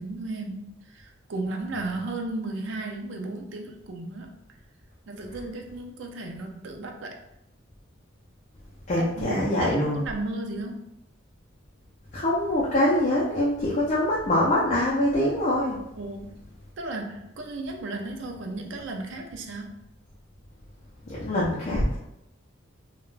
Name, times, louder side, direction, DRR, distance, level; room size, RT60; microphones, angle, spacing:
voice 1, 0.0-4.3 5.1-7.2 9.0-10.9 16.0-16.4 16.8-19.8, right 2 dB, 60° right, 3 dB, 0.4 m, -34 dB
voice 2, 8.9-10.0 12.1-15.8 21.1-22.0, left 1 dB, 35° left, -6 dB, 0.4 m, -24 dB
2.3 x 2.2 x 3.1 m, 0.84 s
head